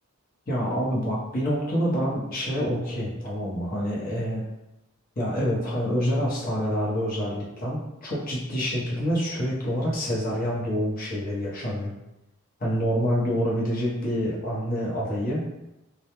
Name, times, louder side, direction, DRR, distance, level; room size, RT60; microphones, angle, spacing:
voice 1, 0.5-4.4 5.2-11.9 12.6-15.4, equal, 40° left, -6 dB, 0.8 m, -27 dB
2.2 x 2.0 x 2.9 m, 0.91 s
head